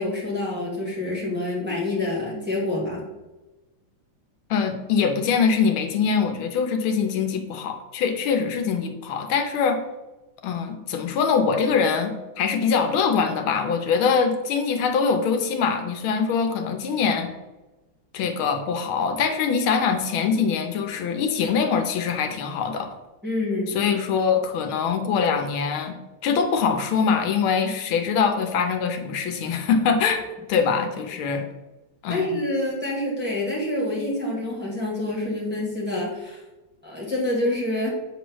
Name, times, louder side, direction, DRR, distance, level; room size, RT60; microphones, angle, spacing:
voice 1, 0.0-3.0 23.2-23.7 32.1-36.4 36.8-37.9, left 1 dB, 5° right, -4 dB, 1.6 m, -27 dB
voice 2, 4.5-9.8 10.4-17.3 18.1-22.9 23.7-31.4 32.0-32.4, left 6 dB, 85° left, 6 dB, 1.6 m, -23 dB
7.7 x 3.0 x 6.2 m, 1.1 s
omnidirectional pair, 2.2 m